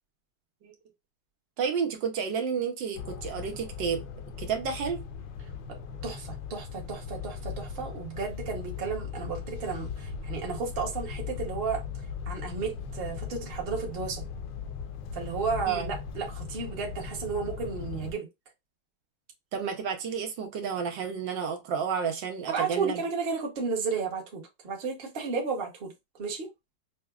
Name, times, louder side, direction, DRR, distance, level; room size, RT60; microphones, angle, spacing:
voice 1, 1.6-4.1 4.4-5.0 15.7-15.8 19.5-23.0, right 6 dB, 85° right, 1.5 m, -31 dB
sound 1, 2.9-18.1, left 6 dB, 80° left, 1.3 m, -38 dB
voice 2, 6.0-11.8 12.3-14.2 15.1-18.3 22.5-25.9 26.2-26.5, right 5 dB, 40° right, 1.0 m, -33 dB
5.9 x 2.1 x 2.3 m
omnidirectional pair, 1.9 m